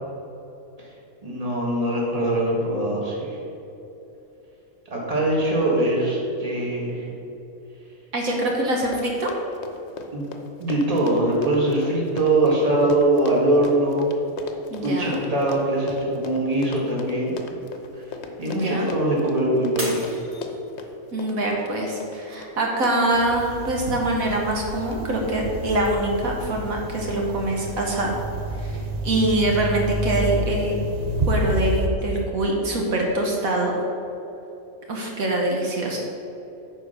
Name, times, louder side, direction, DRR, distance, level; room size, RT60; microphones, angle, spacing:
voice 1, 1.2-3.4 4.9-7.1 10.1-10.3 10.6-14.1 14.8-17.4 17.9-18.0 18.4-20.1, right 1 dB, 25° right, -4 dB, 1.9 m, -22 dB
voice 2, 8.1-9.3 14.7-15.2 18.5-18.9 21.1-28.2 28.6-30.8 31.3-33.8 34.9-36.0, right 1 dB, 75° right, 0 dB, 1.6 m, -24 dB
Run, 8.5-8.6 8.8-23.8 24.3-24.6 24.9-25.0, left 4 dB, 55° left, 1.0 m, -38 dB
Shatter, 19.8-21.1 21.6-22.0 22.6-22.7, equal, 10° right, 1.6 m, -34 dB
sound 1, 23.1-31.9, right 1 dB, 40° right, 0.6 m, -29 dB
9.9 x 4.5 x 6.6 m, 2.9 s
omnidirectional pair, 1.5 m